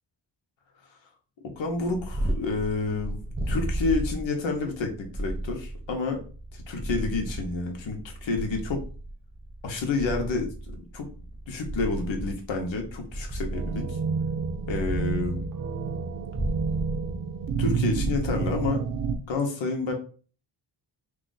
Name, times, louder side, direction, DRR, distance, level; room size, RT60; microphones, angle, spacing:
voice 1, 1.6-6.2 6.5-8.8 9.6-11.1 11.5-13.8 14.7-15.4 17.6-18.8 19.3-19.9, left 3 dB, 80° left, 3 dB, 1.0 m, -29 dB
Purr, 1.7-19.3, right 1 dB, 15° right, 0.9 m, -34 dB
sound 1, 13.5-19.2, right 5 dB, 50° right, 0.5 m, -30 dB
2.8 x 2.4 x 3.9 m, 0.39 s
wide cardioid pair, 115°, 45 cm